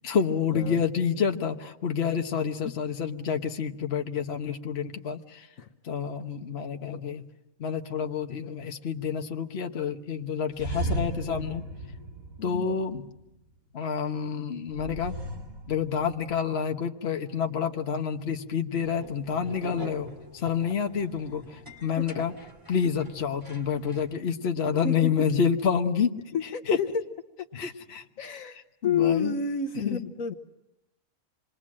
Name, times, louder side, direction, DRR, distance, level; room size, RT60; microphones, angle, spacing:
voice 1, 0.0-5.5 5.8-7.2 7.6-11.6 12.4-13.1 13.7-15.1 15.7-20.1 20.3-22.3 22.7-26.1 26.4-26.8 27.5-28.3 28.8-29.4 29.8-30.0, left 7 dB, 50° left, 5 dB, 1.4 m, -28 dB
sound 1, 10.5-13.2 14.7-16.4, right 1 dB, 70° right, 4.8 m, -35 dB
sound 2, 18.8-24.2, equal, 15° right, 2.7 m, -45 dB
voice 2, 26.3-26.9 27.4-27.5 28.2-28.6 28.8-30.3, left 6 dB, 70° left, 5 dB, 1.5 m, -29 dB
27.5 x 21.5 x 7.5 m, 0.91 s
omnidirectional pair, 1.5 m